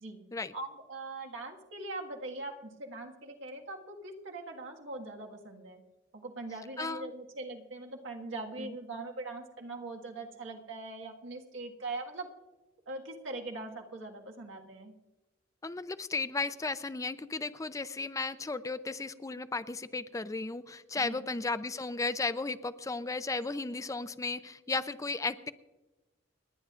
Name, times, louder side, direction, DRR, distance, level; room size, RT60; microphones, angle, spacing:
voice 1, 0.5-5.8 6.1-12.3 12.9-14.9 20.9-21.3, right 2 dB, 90° right, 1 dB, 1.7 m, -41 dB
voice 2, 6.8-7.1 8.6-8.7 15.6-25.5, left 3 dB, 15° left, 13 dB, 0.5 m, -35 dB
30.0 x 10.5 x 2.5 m, 1.1 s
head